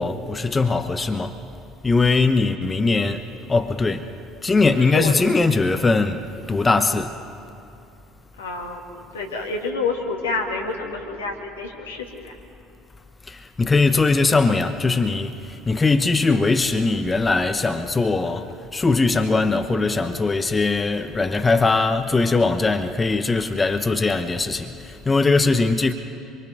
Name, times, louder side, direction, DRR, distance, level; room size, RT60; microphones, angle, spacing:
voice 1, 0.0-1.4 1.8-3.2 3.5-4.1 4.4-7.1 13.3-25.9, left 3 dB, 25° left, 1.1 m, -20 dB
voice 2, 4.8-5.1 8.4-8.8 9.1-12.4, left 3 dB, 85° left, 2.3 m, -28 dB
26.5 x 23.0 x 5.3 m
hypercardioid pair, 60°, 0 cm